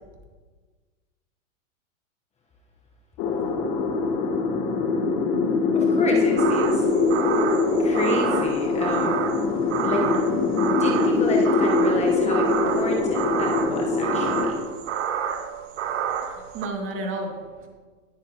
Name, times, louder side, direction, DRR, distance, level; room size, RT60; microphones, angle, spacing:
sound 1, 3.2-14.5, left 3 dB, 45° left, 1.8 m, -23 dB
voice 1, 5.7-6.9 7.8-9.1 9.8-10.1 10.7-14.6, left 2 dB, 15° left, 0 dB, 1.1 m, -29 dB
sound 2, 6.4-16.7, right 8 dB, 70° right, 1.0 m, -29 dB
voice 2, 16.2-17.7, right 2 dB, 30° right, 2 dB, 2.3 m, -32 dB
19.5 x 7.2 x 3.0 m, 1.4 s
hypercardioid pair, 115°, 38 cm